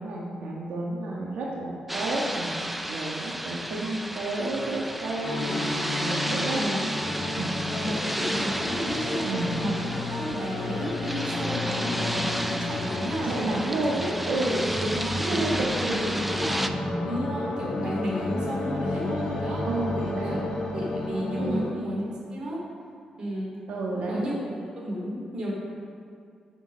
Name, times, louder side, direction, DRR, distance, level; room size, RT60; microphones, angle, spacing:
voice 1, 0.0-5.6 6.0-6.6 7.4-7.5 7.9-8.0 9.2-9.6 13.2-16.3 19.7-20.4 21.4-21.7 23.7-24.2, right 2 dB, 90° right, -4 dB, 1.4 m, -31 dB
sound 1, 1.9-16.7, right 1 dB, 5° right, 0.4 m, -33 dB
sound 2, 5.2-21.7, left 2 dB, 45° left, 1.3 m, -34 dB
voice 2, 6.5-6.9 7.7-9.3 9.6-13.8 14.2-14.4 14.7-14.9 15.3-16.7 17.1-20.4 20.7-22.0 22.3-22.6 23.2-23.6 24.0-24.4 24.8-25.5, equal, 40° right, -3 dB, 2.6 m, -33 dB
sound 3, 6.9-21.4, left 1 dB, 15° left, 1.2 m, -34 dB
8.0 x 6.6 x 6.3 m, 2.3 s
wide cardioid pair, 160°, 2 cm